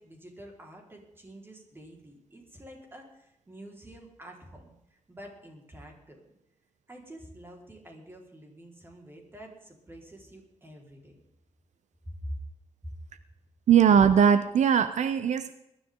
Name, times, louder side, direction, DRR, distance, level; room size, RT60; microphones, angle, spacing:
voice 1, 0.0-6.2 6.9-11.2 12.0-12.3 12.8-12.9, equal, 20° right, 0 dB, 4.4 m, -47 dB
voice 2, 13.7-15.5, right 7 dB, 75° right, 12 dB, 0.8 m, -20 dB
22.0 x 13.0 x 3.8 m, 0.83 s
wide cardioid pair, 130°, 12 cm